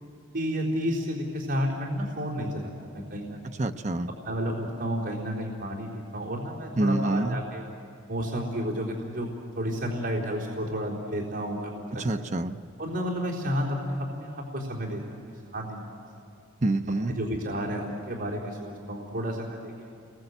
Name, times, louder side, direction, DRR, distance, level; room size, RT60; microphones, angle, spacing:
voice 1, 0.3-3.5 4.2-7.6 8.1-12.3 12.8-15.2 15.5-16.0 17.1-19.9, equal, 60° right, -5 dB, 3.9 m, -31 dB
voice 2, 3.6-4.1 6.8-7.4 11.9-12.6 16.6-17.2, right 2 dB, 35° right, 7 dB, 0.7 m, -26 dB
29.5 x 22.0 x 8.0 m, 2.4 s
head